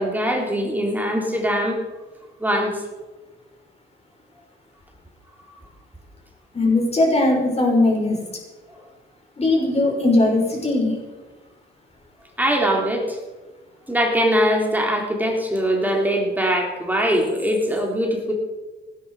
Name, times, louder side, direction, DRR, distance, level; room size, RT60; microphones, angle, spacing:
voice 1, 0.0-1.8 2.4-2.8 8.7-8.8 12.4-13.2 13.9-18.3, equal, 10° right, 0 dB, 3.4 m, -22 dB
voice 2, 6.5-8.2 9.4-10.9, left 2 dB, 30° left, -1 dB, 6.0 m, -19 dB
18.0 x 10.5 x 5.0 m, 1.2 s
cardioid pair, 90°, 20 cm